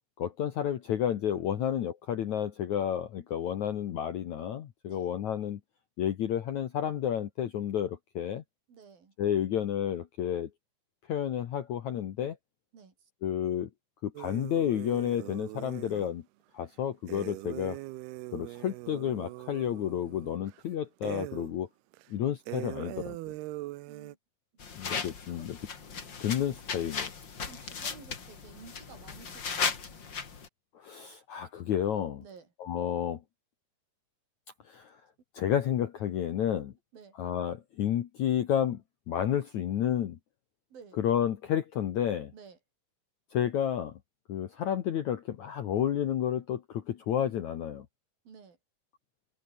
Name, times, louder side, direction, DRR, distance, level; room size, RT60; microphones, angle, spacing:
voice 1, 0.2-5.6 6.0-8.4 9.2-10.5 11.1-12.4 13.2-13.7 14.0-16.2 16.5-17.8 18.3-21.7 22.1-23.2 24.8-25.6 26.2-27.1 30.8-32.2 32.6-33.2 34.7-35.0 35.3-36.7 37.2-38.8 39.1-40.2 41.0-42.3 43.3-44.0 44.3-47.9, left 10 dB, 80° left, 1.7 m, -31 dB
voice 2, 4.9-5.2 8.7-9.2 12.7-13.1 23.9-24.2 25.3-25.6 26.8-27.1 27.4-30.0 32.2-32.5 36.9-37.2 40.7-41.0 42.3-42.6 48.2-48.6, right 6 dB, 50° right, 6.6 m, -52 dB
sound 1, 14.2-16.1 17.1-20.6 21.0-21.6 21.9-22.0 22.5-24.2, right 19 dB, 85° right, 2.3 m, -41 dB
sound 2, 24.6-30.5, left 5 dB, 35° left, 2.0 m, -36 dB
omnidirectional pair, 5.4 m